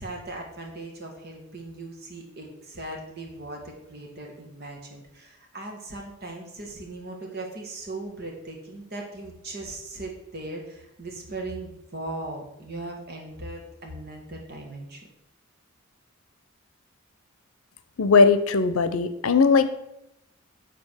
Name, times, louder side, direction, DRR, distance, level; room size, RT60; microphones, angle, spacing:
voice 1, 0.0-15.1, right 2 dB, 50° right, 0 dB, 1.8 m, -38 dB
voice 2, 18.0-19.7, left 4 dB, 85° left, 11 dB, 0.7 m, -19 dB
7.6 x 4.2 x 6.4 m, 0.85 s
head